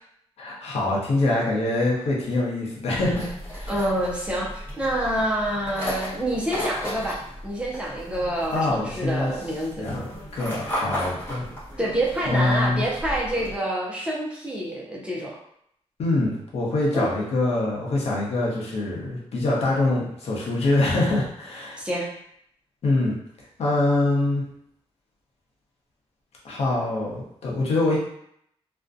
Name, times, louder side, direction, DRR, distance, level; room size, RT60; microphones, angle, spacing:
voice 1, 0.4-3.2 3.6-3.7 8.5-9.3 9.8-11.5 12.3-12.8 16.0-21.8 22.8-23.2 23.6-24.4 26.4-28.0, left 2 dB, 70° left, -4 dB, 0.7 m, -24 dB
sound 1, 3.0-13.5, equal, 20° left, 0.9 m, -35 dB
voice 2, 3.7-7.2 7.4-9.9 11.8-15.4 16.9-17.1 21.8-22.1, right 1 dB, 10° right, -4 dB, 0.4 m, -27 dB
2.5 x 2.1 x 2.4 m, 0.72 s
wide cardioid pair, 170°, 11 cm